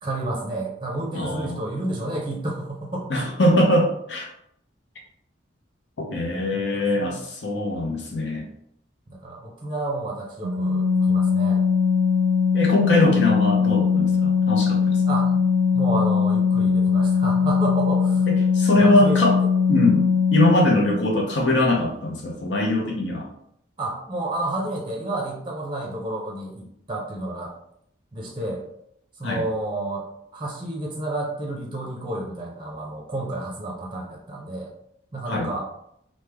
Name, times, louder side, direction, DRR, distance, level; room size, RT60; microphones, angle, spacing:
voice 1, 0.0-3.3 7.0-7.2 9.1-11.6 15.0-15.5 15.7-18.3 18.7-19.2 23.8-27.5 28.1-28.6 29.2-30.1 30.3-34.7 35.1-35.7, right 2 dB, 25° right, -1 dB, 0.5 m, -30 dB
voice 2, 1.1-1.6 3.1-4.3 6.0-8.5 12.5-15.0 18.3-19.4 19.7-23.3 29.2-29.4 35.3-35.5, left 1 dB, 65° left, 0 dB, 0.6 m, -22 dB
Organ, 10.4-21.0, left 6 dB, 85° right, 0.3 m, -20 dB
3.1 x 2.1 x 3.3 m, 0.73 s
head